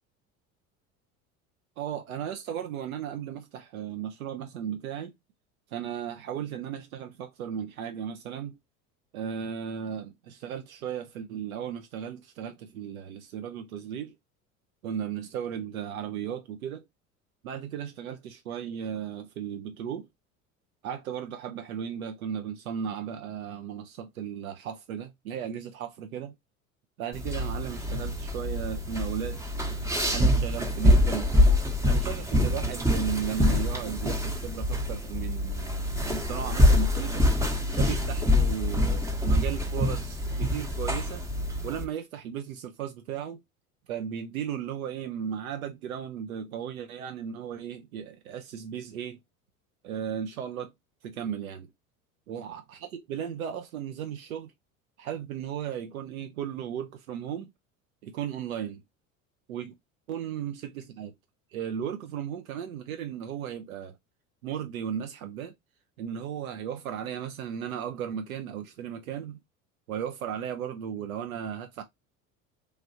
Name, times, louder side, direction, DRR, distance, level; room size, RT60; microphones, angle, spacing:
voice 1, 1.8-5.1 5.7-8.5 9.1-14.1 14.8-16.8 17.4-20.1 20.8-26.4 27.0-29.4 30.1-31.5 31.9-37.3 37.8-41.2 41.6-43.4 43.9-49.2 49.8-50.7 51.0-51.7 52.3-54.5 55.0-57.5 58.0-58.8 59.5-59.7 60.1-61.1 61.5-64.0 64.4-65.5 66.0-69.4 69.9-71.8, right 8 dB, 85° right, 0.5 m, -35 dB
sound 1, 27.1-41.8, left 1 dB, 5° right, 0.6 m, -25 dB
3.2 x 2.3 x 2.7 m
hypercardioid pair, 75°, 41 cm